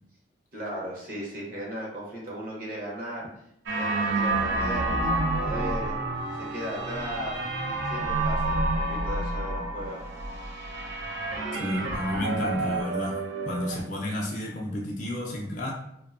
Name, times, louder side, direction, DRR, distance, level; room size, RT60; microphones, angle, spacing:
voice 1, 0.5-3.3 3.8-6.0 6.5-7.4 7.8-10.0, equal, 50° right, -4 dB, 0.7 m, -36 dB
sound 1, 3.7-13.8, right 2 dB, 85° right, 0.4 m, -29 dB
voice 2, 11.6-13.2 13.4-15.7, left 1 dB, 40° left, -2 dB, 0.4 m, -31 dB
2.5 x 2.1 x 2.4 m, 0.77 s
head